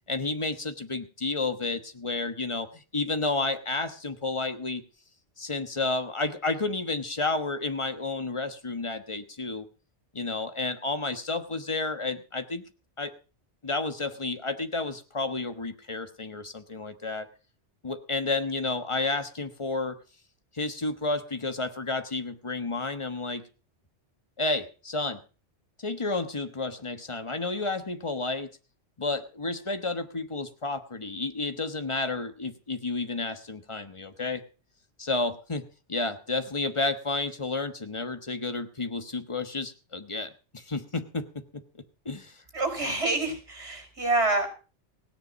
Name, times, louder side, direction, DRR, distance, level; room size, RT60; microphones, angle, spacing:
voice 1, 0.1-4.8 5.4-9.6 10.1-12.6 13.0-13.1 13.6-17.3 17.8-20.0 20.5-23.4 24.4-25.2 25.8-28.5 29.0-34.4 35.0-41.6 42.0-42.4, left 3 dB, 25° left, 9 dB, 1.2 m, -31 dB
voice 2, 42.5-44.5, right 2 dB, 65° right, 5 dB, 5.2 m, -27 dB
17.0 x 9.9 x 5.3 m, 0.37 s
omnidirectional pair, 1.2 m